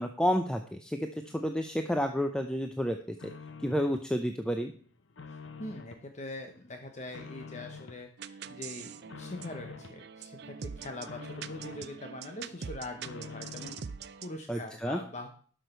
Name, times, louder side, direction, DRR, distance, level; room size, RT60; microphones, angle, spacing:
voice 1, 0.0-3.2 3.6-4.7 14.5-15.0, equal, 5° left, 5 dB, 0.6 m, -30 dB
sound 1, 1.3-2.1 2.5-4.1 4.5-6.1 6.5-8.0 8.4-10.0 10.4-12.0 12.4-14.0, left 5 dB, 75° left, 0.9 m, -48 dB
voice 2, 5.6-13.7 14.2-15.3, left 2 dB, 40° left, 5 dB, 1.0 m, -43 dB
sound 2, 8.2-14.4, right 7 dB, 60° right, 0.5 m, -44 dB
12.0 x 6.4 x 4.5 m, 0.44 s
head